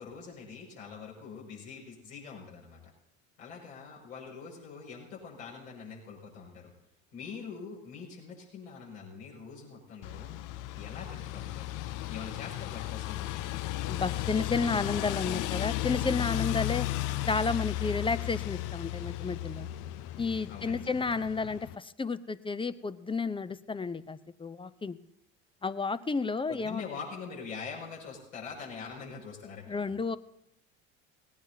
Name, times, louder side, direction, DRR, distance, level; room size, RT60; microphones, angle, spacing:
voice 1, 0.0-2.9 3.4-6.7 7.1-10.4 10.7-11.7 12.1-13.4 20.5-21.2 26.5-29.9, left 5 dB, 80° left, -3 dB, 6.2 m, -44 dB
sound 1, 10.0-21.7, left 16 dB, 50° left, 0.6 m, -35 dB
voice 2, 13.9-16.9 17.3-19.7 20.2-25.0 25.6-26.8 29.7-30.2, left 4 dB, 15° left, 14 dB, 0.7 m, -32 dB
19.5 x 18.0 x 2.8 m, 0.83 s
hypercardioid pair, 70°, 39 cm